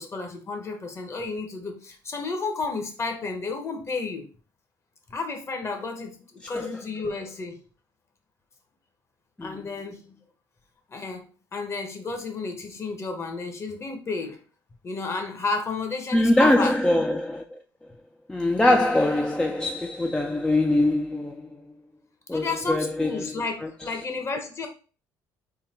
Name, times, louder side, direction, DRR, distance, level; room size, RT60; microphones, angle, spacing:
voice 1, 0.0-4.3 5.1-7.6 9.4-10.1 10.9-11.3 11.5-14.4 14.8-16.8 22.3-24.7, left 3 dB, 35° left, 0.9 m, -32 dB
voice 2, 16.1-17.6 18.3-21.5 22.3-23.3 23.6-23.7, left 1 dB, 10° left, 0.4 m, -23 dB
3.8 x 2.2 x 4.1 m
cardioid pair, 90°, 8 cm